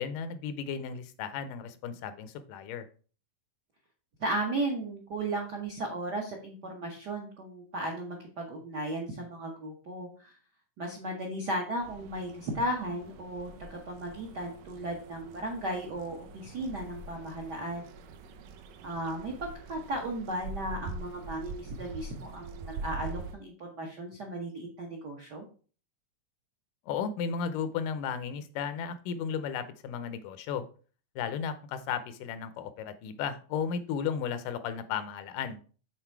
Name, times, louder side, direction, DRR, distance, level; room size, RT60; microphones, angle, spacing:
voice 1, 0.0-2.9 26.9-30.6 31.2-35.6, left 7 dB, 85° left, 11 dB, 2.3 m, -34 dB
voice 2, 4.2-10.3 10.8-17.9 18.8-25.4, right 1 dB, 70° right, 0 dB, 1.0 m, -35 dB
sound 1, 11.8-23.3, right 3 dB, 85° right, 2.4 m, -44 dB
7.9 x 3.9 x 4.5 m, 0.39 s
omnidirectional pair, 3.7 m